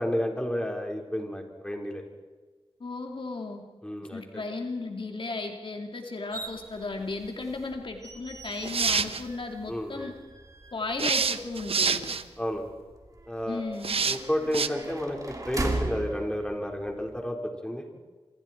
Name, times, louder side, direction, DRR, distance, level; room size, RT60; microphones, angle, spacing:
voice 1, 0.0-2.0 3.8-4.4 9.7-10.1 12.4-12.7 13.3-13.6 14.0-17.9, equal, 10° left, 1 dB, 4.6 m, -31 dB
voice 2, 2.8-3.7 4.1-10.1 10.7-12.2 13.5-14.0, left 3 dB, 60° left, 3 dB, 2.6 m, -35 dB
sound 1, 6.3-17.2, right 2 dB, 35° right, 2.9 m, -39 dB
sound 2, 8.5-9.2 11.0-12.2 13.8-14.2 14.5-14.7, right 5 dB, 70° right, 1.0 m, -26 dB
27.5 x 26.5 x 4.6 m, 1.4 s
wide cardioid pair, 70°, 10 cm